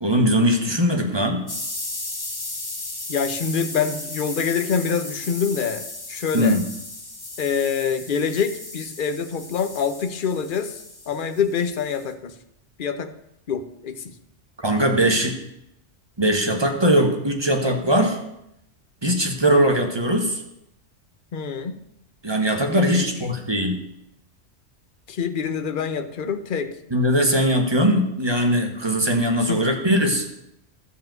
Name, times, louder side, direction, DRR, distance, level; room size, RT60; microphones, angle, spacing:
voice 1, 0.0-1.5 6.3-6.6 14.6-15.3 16.2-18.2 19.0-20.4 22.2-23.8 26.9-30.2, equal, 20° right, 3 dB, 1.4 m, -20 dB
sound 1, 1.5-12.1, left 2 dB, 20° left, 1.0 m, -35 dB
voice 2, 3.1-6.6 7.4-12.4 12.8-13.1 13.5-14.2 21.3-21.8 22.7-23.1 25.1-26.7 29.5-29.6, left 6 dB, 50° left, 10 dB, 0.9 m, -26 dB
12.0 x 5.1 x 7.8 m, 0.81 s
omnidirectional pair, 1.2 m